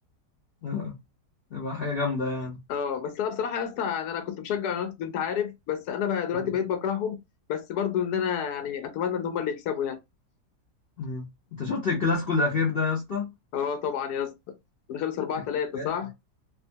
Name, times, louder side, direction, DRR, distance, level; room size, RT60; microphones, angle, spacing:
voice 1, 0.6-0.9 1.5-2.6 6.3-6.5 11.0-11.3 11.5-13.3 15.7-15.9, left 4 dB, 50° left, 0.7 m, -28 dB
voice 2, 2.7-7.2 7.5-10.0 13.5-14.3 14.9-16.1, left 8 dB, 75° left, 1.1 m, -29 dB
2.7 x 2.2 x 2.6 m
omnidirectional pair, 1.8 m